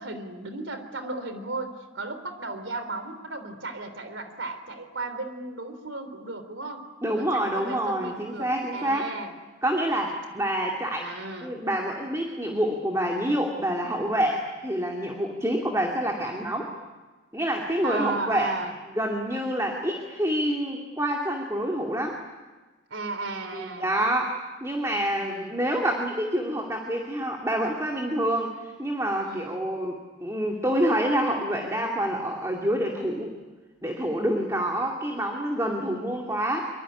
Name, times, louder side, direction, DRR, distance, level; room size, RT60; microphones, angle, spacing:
voice 1, 0.0-6.8 7.2-9.3 11.0-11.6 17.8-18.7 22.9-23.9 25.2-25.6 29.2-29.7, right 3 dB, 90° right, 9 dB, 3.7 m, -35 dB
voice 2, 7.0-9.1 9.6-11.1 11.4-16.7 17.3-18.5 19.0-22.2 23.5-24.3 24.6-33.3 33.8-36.7, right 1 dB, 15° right, 1 dB, 2.5 m, -27 dB
25.0 x 24.0 x 9.9 m, 1.3 s
head